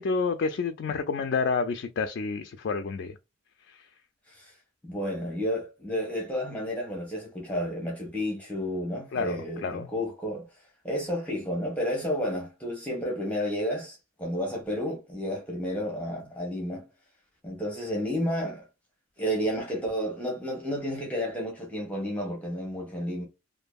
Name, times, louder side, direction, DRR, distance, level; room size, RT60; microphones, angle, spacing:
voice 1, 0.0-3.2 3.7-3.8 9.1-9.9, left 4 dB, 55° left, 0.3 m, -29 dB
voice 2, 4.8-10.5 10.8-16.8 17.4-18.7 19.2-23.2, equal, 5° left, 0.9 m, -31 dB
2.6 x 2.6 x 2.2 m
head